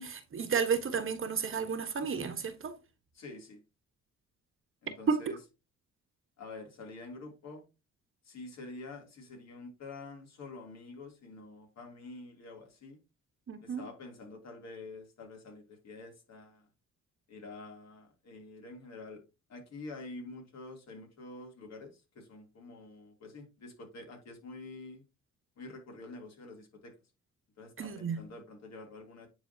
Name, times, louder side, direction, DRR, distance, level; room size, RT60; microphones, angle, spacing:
voice 1, 0.0-2.7 5.1-5.2 13.5-13.8 27.8-28.2, right 6 dB, 45° right, 1.3 m, -32 dB
voice 2, 3.1-3.6 4.8-5.4 6.4-7.6 8.2-13.0 13.6-16.7 17.3-19.2 19.5-25.0 25.6-26.9 27.6-29.3, left 2 dB, 60° left, 3.0 m, -47 dB
9.5 x 4.1 x 2.8 m
cardioid pair, 90°, 30 cm